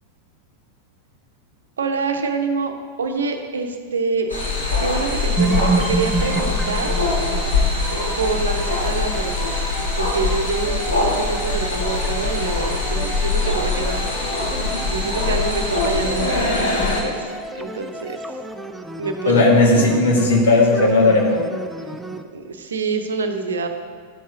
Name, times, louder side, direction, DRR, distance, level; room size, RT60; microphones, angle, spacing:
voice 1, 1.8-4.3 4.8-7.0 8.2-9.6 10.0-14.1 14.9-18.2 19.0-19.9 22.3-23.7, right 4 dB, 70° right, 6 dB, 0.7 m, -26 dB
sound 1, 4.3-17.0, left 3 dB, 75° left, 2.1 m, -22 dB
sound 2, 5.4-22.2, right 3 dB, 5° right, 0.5 m, -30 dB
voice 2, 19.2-21.4, left 2 dB, 60° left, -1 dB, 1.6 m, -15 dB
11.5 x 7.4 x 2.9 m, 2.1 s
figure-of-eight pair, 90°, 0 cm